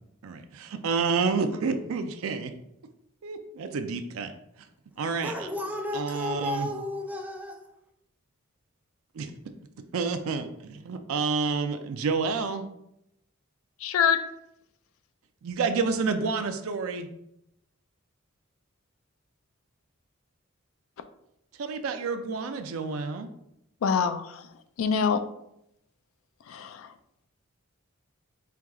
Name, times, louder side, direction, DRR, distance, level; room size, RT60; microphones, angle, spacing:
voice 1, 0.2-2.5 3.2-4.3 5.0-5.5 5.9-6.7 9.2-9.3 9.9-12.7 15.4-17.1 21.6-23.3, right 4 dB, 75° right, 0.4 m, -29 dB
voice 2, 5.2-7.6, left 1 dB, 5° right, 0.4 m, -33 dB
voice 3, 13.8-14.2 23.8-24.4 24.8-25.2 26.5-26.9, left 7 dB, 70° left, 0.3 m, -25 dB
4.5 x 2.3 x 3.6 m
head